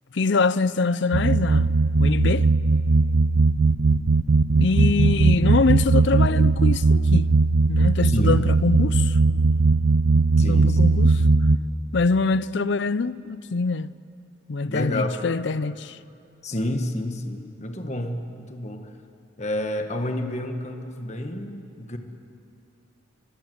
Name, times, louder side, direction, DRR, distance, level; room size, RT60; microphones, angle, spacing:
voice 1, 0.1-1.7 2.0-2.5 4.5-7.3 7.7-9.2 10.5-11.1 11.9-13.9 14.5-16.0, left 4 dB, 60° left, 0.5 m, -24 dB
sound 1, 1.1-11.6, right 3 dB, 80° right, 0.7 m, -19 dB
voice 2, 10.4-10.8 14.7-15.1 16.4-18.9 19.4-22.0, left 1 dB, 35° left, 1.6 m, -29 dB
25.0 x 20.5 x 7.9 m
head